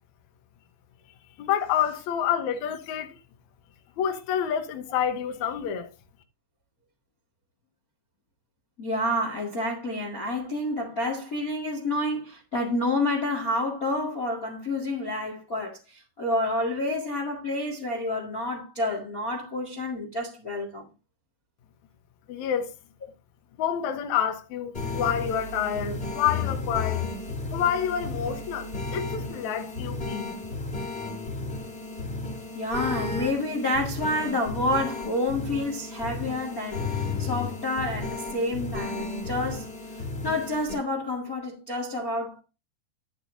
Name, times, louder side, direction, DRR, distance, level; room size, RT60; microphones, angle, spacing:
voice 1, 1.4-3.2 4.0-5.9 22.3-22.7 23.6-27.1 27.5-30.3, left 9 dB, 70° left, 1.7 m, -28 dB
voice 2, 8.8-20.8 32.5-39.7 40.2-42.4, left 1 dB, 50° left, 1.0 m, -29 dB
sound 1, 24.7-40.7, left 3 dB, 20° left, 2.3 m, -33 dB
11.0 x 8.9 x 2.6 m
omnidirectional pair, 4.9 m